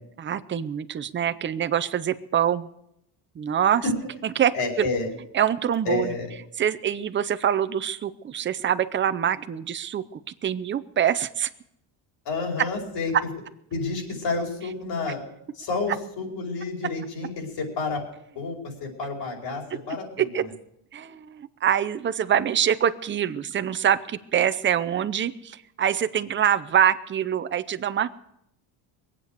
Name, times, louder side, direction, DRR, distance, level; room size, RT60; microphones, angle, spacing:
voice 1, 0.2-2.7 3.4-3.8 4.2-4.9 5.3-6.1 6.6-11.5 20.2-20.5 20.9-28.1, right 9 dB, 25° right, 12 dB, 0.6 m, -25 dB
voice 2, 4.5-5.1 5.8-6.3 12.2-13.1 13.7-15.2 15.5-18.0 18.3-20.5, left 4 dB, 55° left, 1 dB, 5.0 m, -30 dB
22.5 x 8.5 x 6.6 m, 0.78 s
cardioid pair, 140°, 48 cm